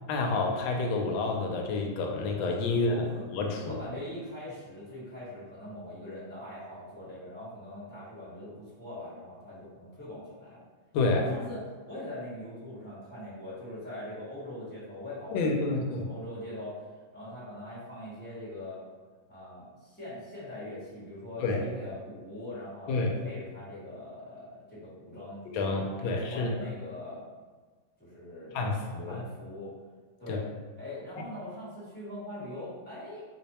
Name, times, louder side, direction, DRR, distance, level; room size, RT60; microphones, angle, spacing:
voice 1, 0.1-3.0 3.3-3.8 10.9-11.2 15.3-16.1 21.4-21.6 22.9-23.1 25.5-26.5 28.5-29.2 30.3-30.4 31.2-31.3, left 3 dB, 85° left, 1 dB, 1.4 m, -29 dB
voice 2, 2.7-10.6 11.0-15.6 15.9-18.8 19.3-25.4 25.8-27.3 28.0-29.7 30.2-30.4 30.8-33.2, left 1 dB, 5° left, -10 dB, 0.9 m, -42 dB
3.3 x 2.1 x 4.1 m, 1.4 s
omnidirectional pair, 2.1 m